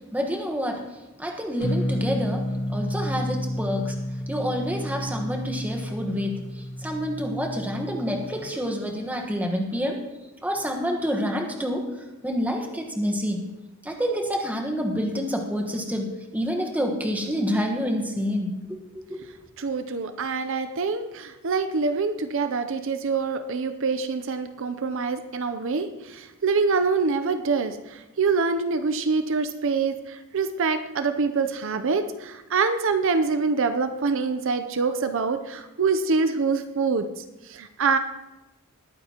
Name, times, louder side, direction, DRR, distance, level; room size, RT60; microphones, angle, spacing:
voice 1, 0.1-0.8 1.2-3.9 4.3-6.4 6.8-10.0 10.4-11.8 12.2-13.5 13.8-16.1 16.3-19.2, equal, 10° right, 2 dB, 1.3 m, -28 dB
sound 1, 1.6-8.5, left 1 dB, 55° left, 1.6 m, -31 dB
voice 2, 19.6-38.0, right 4 dB, 60° right, 9 dB, 0.6 m, -25 dB
20.0 x 9.2 x 2.9 m, 1.0 s
head